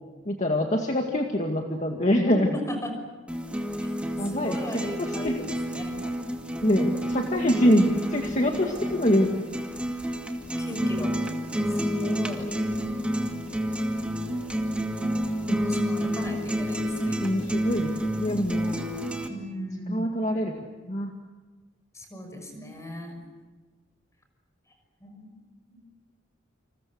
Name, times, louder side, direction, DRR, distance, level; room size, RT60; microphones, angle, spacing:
voice 1, 0.3-2.5 4.2-4.9 5.2-5.3 6.6-9.3 15.5-15.6 17.2-17.9 18.2-18.8 19.9-20.5 20.9-21.1, left 1 dB, 35° left, 2 dB, 2.1 m, -24 dB
voice 2, 2.3-3.0 4.2-5.9 10.6-11.1 11.7-12.5 15.6-17.3 19.3-20.1 21.9-23.2 25.0-25.4 25.7-25.8, equal, 15° left, 4 dB, 6.0 m, -37 dB
sound 1, 3.3-19.3, equal, 5° right, 2.2 m, -29 dB
29.5 x 27.5 x 6.4 m, 1.3 s
head